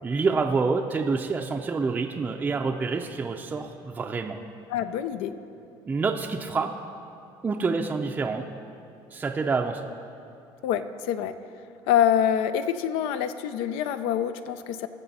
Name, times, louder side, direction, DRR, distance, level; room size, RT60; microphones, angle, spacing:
voice 1, 0.0-4.4 5.9-6.7 7.4-8.5 9.1-9.9, right 4 dB, 20° right, 3 dB, 0.4 m, -27 dB
voice 2, 4.7-5.3 10.6-11.3 11.9-14.9, left 9 dB, 90° left, 11 dB, 0.5 m, -25 dB
20.0 x 6.6 x 4.1 m, 2.6 s
cardioid pair, 145°, 9 cm